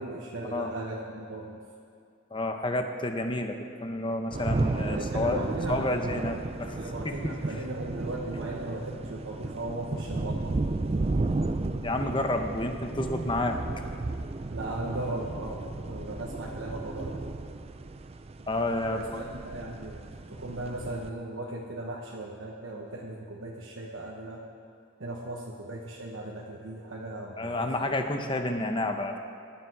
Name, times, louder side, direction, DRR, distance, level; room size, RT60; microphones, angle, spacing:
voice 1, 0.0-1.6 4.6-6.3 6.8-10.6 14.5-17.2 18.9-24.5 25.0-27.7, right 1 dB, 70° right, -2 dB, 1.1 m, -37 dB
voice 2, 2.3-5.4 5.7-6.8 7.0-7.3 11.8-13.6 18.5-19.2 27.4-29.2, left 1 dB, 25° left, 5 dB, 0.9 m, -30 dB
sound 1, 4.3-21.1, right 2 dB, 30° right, 0.4 m, -33 dB
17.0 x 10.5 x 4.7 m, 2.3 s
head